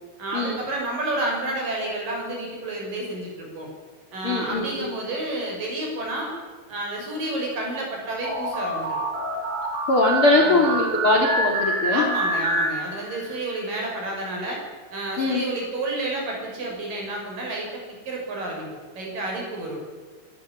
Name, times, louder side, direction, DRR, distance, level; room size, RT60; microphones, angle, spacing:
voice 1, 0.2-3.7 4.1-6.3 6.7-9.0 10.4-10.6 11.9-14.6 14.9-18.7 18.9-19.8, right 2 dB, 45° right, -1 dB, 7.8 m, -30 dB
voice 2, 4.2-4.9 9.9-12.0 15.2-15.4, left 2 dB, 35° left, 1 dB, 2.7 m, -21 dB
sound 1, 8.2-13.3, right 2 dB, 65° right, 7.1 m, -26 dB
26.0 x 14.5 x 8.6 m, 1.5 s
omnidirectional pair, 5.7 m